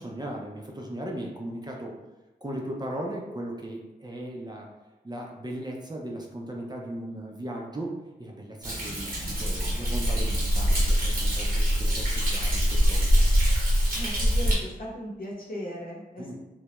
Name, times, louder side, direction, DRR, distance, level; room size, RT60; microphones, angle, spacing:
voice 1, 0.0-1.9 2.4-4.7 5.0-7.9 8.2-13.0 16.2-16.3, right 1 dB, 25° right, -1 dB, 0.4 m, -37 dB
Thunder, 8.6-14.5, equal, 55° right, 0.8 m, -24 dB
voice 2, 13.9-16.3, equal, 55° left, -4 dB, 0.8 m, -37 dB
2.2 x 2.0 x 2.9 m, 1.1 s
wide cardioid pair, 60°, 17 cm